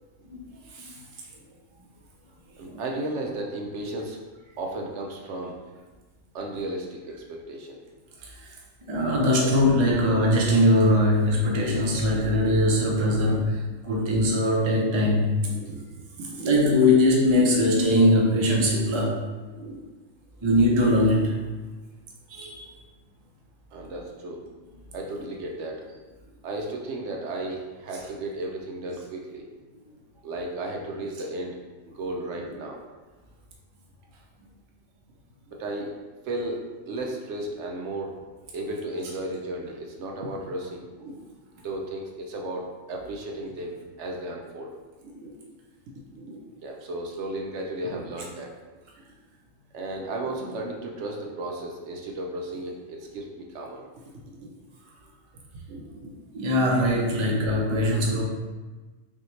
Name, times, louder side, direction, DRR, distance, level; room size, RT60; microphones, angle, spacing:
voice 1, 2.6-4.2 4.6-5.6 6.3-7.8 9.4-9.5 11.6-12.3 15.5-16.7 19.5-19.8 23.7-24.4 24.9-25.9 26.4-29.4 30.2-31.6 31.9-32.8 35.5-35.9 36.2-36.6 36.9-38.1 38.5-41.2 41.6-43.7 44.0-44.7 45.0-45.6 46.0-48.5 49.7-53.8 54.4-54.5 55.7-56.1 57.4-57.6, right 2 dB, 65° right, 0 dB, 0.9 m, -34 dB
voice 2, 8.2-8.5 8.9-15.4 16.4-19.2 20.4-21.4 22.3-22.7 29.7-29.8 56.3-58.2, left 1 dB, 40° right, -2 dB, 0.4 m, -21 dB
5.4 x 2.2 x 3.1 m, 1.3 s
omnidirectional pair, 1.4 m